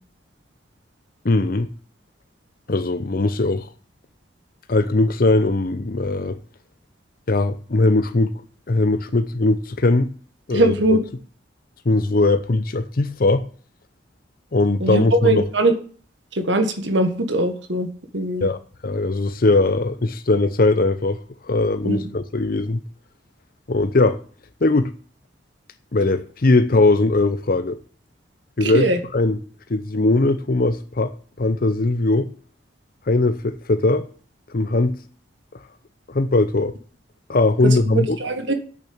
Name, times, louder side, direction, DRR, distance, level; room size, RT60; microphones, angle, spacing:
voice 1, 1.2-1.7 2.7-3.7 4.7-6.4 7.3-8.3 8.7-10.1 10.5-10.7 11.9-13.4 14.5-15.4 18.4-22.8 23.7-24.2 24.6-24.9 25.9-27.8 28.6-28.9 29.1-29.4 29.7-32.3 33.1-34.1 34.5-35.0 36.1-36.8 37.3-38.2, left 2 dB, 50° left, 0.7 m, -20 dB
voice 2, 10.5-11.0 14.8-15.7 16.3-18.5 21.8-22.0 28.6-29.0 37.6-38.5, right 2 dB, 80° right, 1.5 m, -21 dB
8.6 x 6.8 x 8.6 m
head